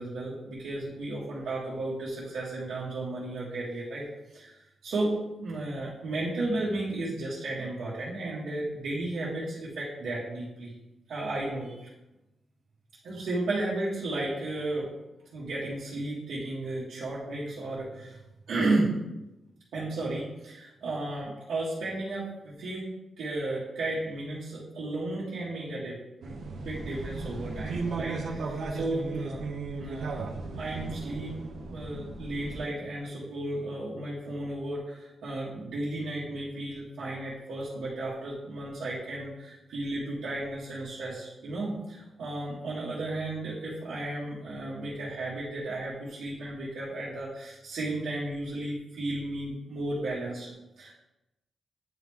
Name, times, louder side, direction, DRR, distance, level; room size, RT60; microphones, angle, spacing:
voice 1, 0.0-4.0 4.3-10.7 11.1-11.9 13.0-14.9 15.3-18.2 18.5-18.9 19.7-22.9 23.2-29.5 29.8-30.2 30.6-31.3 31.7-50.9, right 2 dB, 90° right, -8 dB, 1.3 m, -34 dB
sound 1, 26.2-32.7, right 3 dB, 65° right, 0.7 m, -36 dB
8.9 x 3.2 x 3.5 m, 0.96 s
wide cardioid pair, 175°, 0 cm